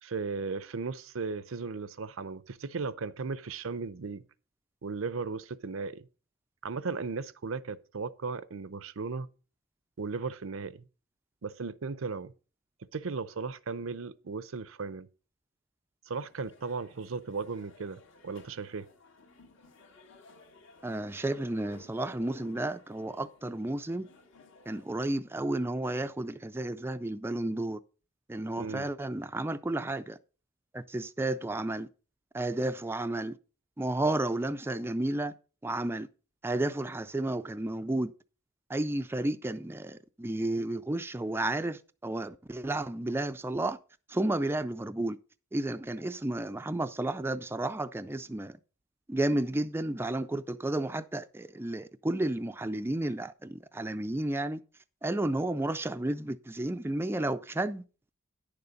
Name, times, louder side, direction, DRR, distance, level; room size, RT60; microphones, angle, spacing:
voice 1, 0.0-4.2 4.8-6.1 6.6-9.3 10.0-10.8 11.4-12.3 12.9-15.1 16.1-18.9 28.6-28.9, right 4 dB, 70° right, 0.6 m, -36 dB
sound 1, 16.1-25.1, left 2 dB, 65° left, 2.0 m, -57 dB
voice 2, 20.8-24.1 24.7-27.8 28.3-30.2 30.7-31.9 32.3-33.4 33.8-35.3 35.6-36.1 36.4-38.1 38.7-43.8 44.1-45.2 45.5-48.6 49.1-54.6 55.0-57.8, right 1 dB, 10° right, 0.4 m, -32 dB
10.5 x 6.8 x 5.1 m
head